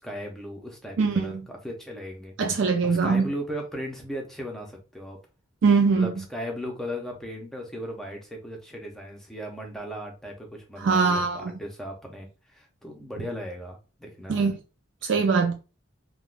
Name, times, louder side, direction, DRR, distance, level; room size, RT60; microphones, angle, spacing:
voice 1, 0.0-1.3 1.6-2.3 2.8-5.2 6.0-14.5 15.0-15.1, equal, ahead, 0.6 m, -37 dB
voice 2, 1.0-1.4 2.4-3.3 5.6-6.2 10.8-11.6 14.3-14.6 15.0-15.5, right 4 dB, 65° right, 0.4 m, -22 dB
3.4 x 2.2 x 2.4 m
head